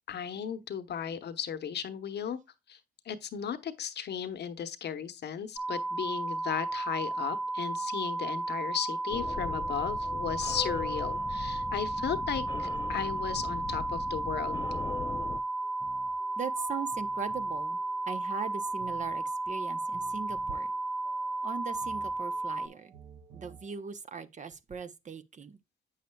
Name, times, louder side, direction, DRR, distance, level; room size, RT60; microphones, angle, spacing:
voice 1, 0.1-2.4 2.7-2.8 3.0-14.6, left 8 dB, 55° left, 0.9 m, -35 dB
sound 1, 5.6-22.7, right 2 dB, 5° right, 1.1 m, -33 dB
sound 2, 9.1-15.4, left 5 dB, 25° left, 0.3 m, -40 dB
sound 3, 15.6-23.7, right 5 dB, 85° right, 1.3 m, -55 dB
voice 2, 16.4-17.8 18.1-20.7 21.4-22.9 23.3-25.6, right 6 dB, 40° right, 0.7 m, -39 dB
8.1 x 6.4 x 2.2 m
cardioid pair, 90°, 20 cm